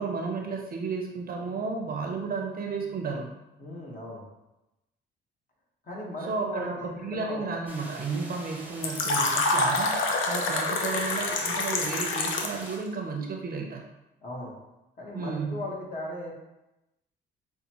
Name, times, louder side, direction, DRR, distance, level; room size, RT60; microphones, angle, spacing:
voice 1, 0.0-3.3 6.2-9.9 10.3-13.9 15.1-15.6, right 4 dB, 50° right, 1 dB, 0.7 m, -33 dB
voice 2, 3.6-4.2 5.8-7.4 14.2-14.5 15.0-16.3, left 1 dB, 45° left, -3 dB, 1.3 m, -37 dB
sound 1, 7.7-12.8, right 1 dB, 10° right, 0.8 m, -44 dB
Fill (with liquid), 8.8-12.7, left 3 dB, 85° left, 0.6 m, -27 dB
5.3 x 2.1 x 2.9 m, 0.95 s
cardioid pair, 90°, 20 cm